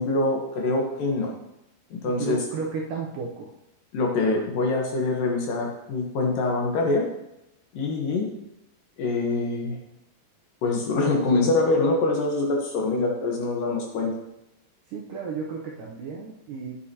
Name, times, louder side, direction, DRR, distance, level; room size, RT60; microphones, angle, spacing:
voice 1, 0.0-1.3 1.9-2.4 3.9-7.1 7.7-8.3 9.0-9.8 10.6-14.2, left 3 dB, 65° left, 0 dB, 2.6 m, -24 dB
voice 2, 2.0-3.5 14.9-16.7, right 5 dB, 75° right, -2 dB, 2.0 m, -33 dB
9.5 x 8.3 x 2.9 m, 0.85 s
omnidirectional pair, 4.7 m